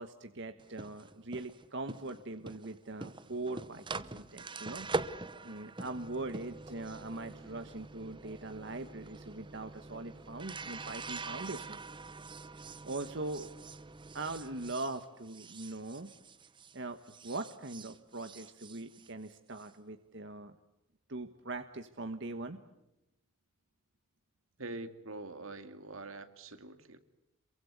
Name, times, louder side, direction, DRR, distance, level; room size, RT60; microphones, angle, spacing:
voice 1, 0.0-4.9 5.4-11.8 12.8-13.5 14.1-16.1 16.7-20.5 21.1-22.6, right 2 dB, 60° right, 8 dB, 1.3 m, -41 dB
sound 1, 0.6-16.8 17.1-19.7, right 3 dB, 25° right, 0.9 m, -44 dB
voice 2, 24.6-27.0, right 2 dB, 80° right, 10 dB, 2.3 m, -44 dB
27.5 x 23.5 x 8.2 m, 0.91 s
head